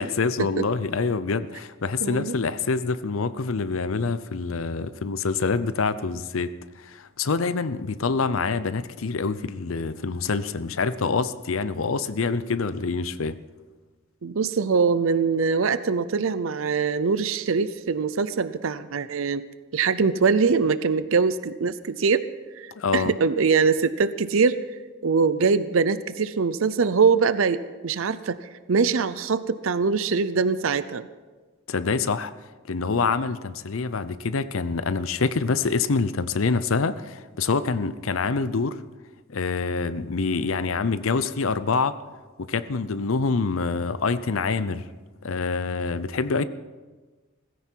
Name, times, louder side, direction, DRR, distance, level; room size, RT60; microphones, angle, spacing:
voice 1, 0.0-6.5 6.8-13.4 22.8-23.1 31.7-32.3 32.7-38.8 39.3-42.0 42.4-44.8 45.2-46.4, left 4 dB, 75° left, 14 dB, 0.6 m, -26 dB
voice 2, 2.0-2.3 14.2-19.5 19.7-22.2 22.6-24.6 25.0-31.1, right 5 dB, 70° right, 14 dB, 0.6 m, -23 dB
17.5 x 15.5 x 4.6 m, 1.3 s
head